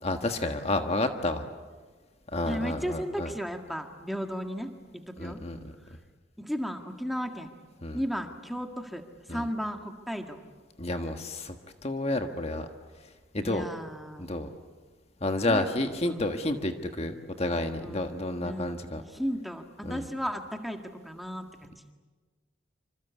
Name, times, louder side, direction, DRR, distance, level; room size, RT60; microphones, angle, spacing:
voice 1, 0.0-1.4 2.3-3.3 5.2-5.6 7.8-8.0 9.3-9.5 10.8-11.5 11.8-12.7 13.3-13.7 14.2-14.5 15.2-19.0 19.8-20.0, left 2 dB, 35° left, 6 dB, 1.5 m, -30 dB
voice 2, 2.5-4.7 5.1-5.4 6.4-7.5 7.9-9.0 9.3-10.4 13.4-14.3 15.5-15.6 17.8-18.1 18.4-18.8 19.1-21.9, equal, ahead, 4 dB, 1.9 m, -34 dB
27.0 x 26.5 x 8.3 m, 1.4 s
head